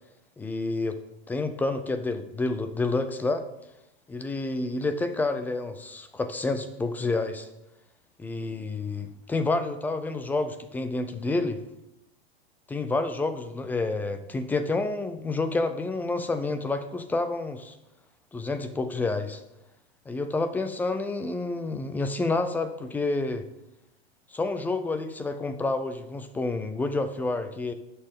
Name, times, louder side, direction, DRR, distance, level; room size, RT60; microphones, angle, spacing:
voice 1, 0.4-1.0 1.3-3.4 4.1-7.5 8.2-11.6 12.7-17.8 18.3-19.4 20.1-23.4 24.3-27.7, left 3 dB, 5° left, 9 dB, 0.5 m, -29 dB
19.5 x 6.8 x 3.7 m, 0.87 s
hypercardioid pair, 145°, 31 cm